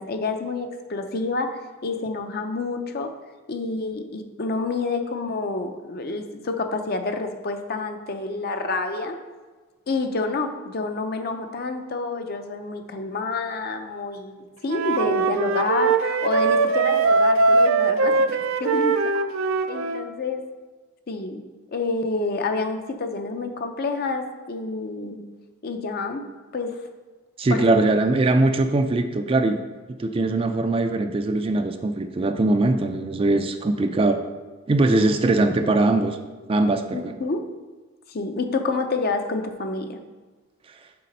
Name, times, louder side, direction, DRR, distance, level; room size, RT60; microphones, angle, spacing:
voice 1, 0.0-3.1 3.5-9.2 9.9-19.0 19.7-20.4 21.1-21.4 21.7-25.2 25.6-26.3 26.5-26.8 27.5-27.8 34.9-35.0 36.9-37.4 38.1-40.0, left 3 dB, 50° left, 6 dB, 0.6 m, -28 dB
Wind instrument woodwind instrument, 14.7-20.0, right 3 dB, 90° right, 0.4 m, -21 dB
voice 2, 27.4-29.6 30.0-34.2 34.7-36.2 36.5-37.1, right 2 dB, 25° right, 7 dB, 0.4 m, -21 dB
6.7 x 4.0 x 5.3 m, 1.3 s
head